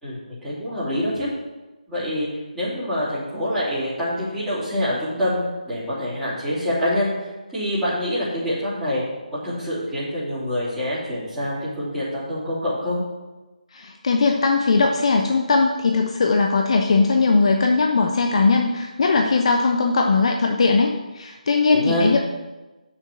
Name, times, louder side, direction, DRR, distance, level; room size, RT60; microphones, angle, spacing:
voice 1, 0.0-1.3 1.9-2.3 2.5-9.0 9.3-13.0 21.7-22.1, equal, ahead, -16 dB, 3.6 m, -26 dB
voice 2, 13.7-22.2, left 4 dB, 45° left, 3 dB, 0.9 m, -19 dB
7.3 x 7.0 x 8.2 m, 1.1 s
figure-of-eight pair, 155°, 4 cm